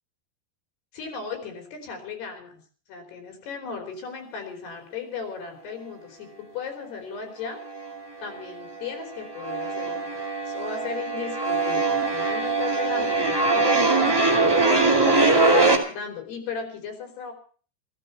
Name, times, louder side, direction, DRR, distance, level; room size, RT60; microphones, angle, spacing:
voice 1, 0.9-2.6 2.9-7.6 8.2-15.1 15.9-17.3, left 5 dB, 75° left, 4 dB, 5.4 m, -36 dB
sound 1, 7.5-8.3 8.6-15.8, right 3 dB, 10° right, 1.3 m, -22 dB
15.0 x 14.5 x 5.5 m, 0.41 s
omnidirectional pair, 4.8 m